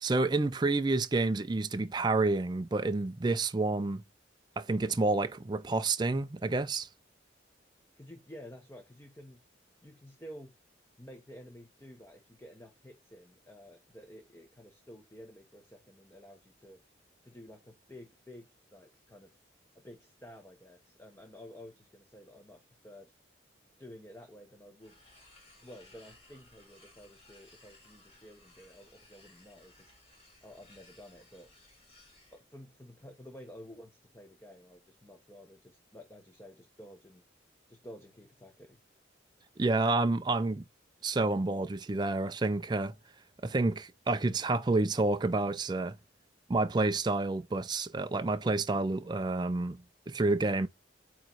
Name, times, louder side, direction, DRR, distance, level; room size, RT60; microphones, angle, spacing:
voice 1, 0.0-4.0 4.6-6.9 39.6-40.6 41.0-42.9 43.4-46.0 46.5-50.7, right 3 dB, 20° right, 0.4 m, -29 dB
voice 2, 8.0-9.4 9.8-10.5 11.0-16.8 17.2-19.4 19.7-23.1 23.8-24.9 25.6-29.9 30.4-31.5 32.3-37.2 37.7-38.8, equal, 10° left, 0.9 m, -51 dB
sound 1, 24.8-32.4, left 2 dB, 30° left, 3.5 m, -60 dB
8.8 x 3.1 x 3.9 m
head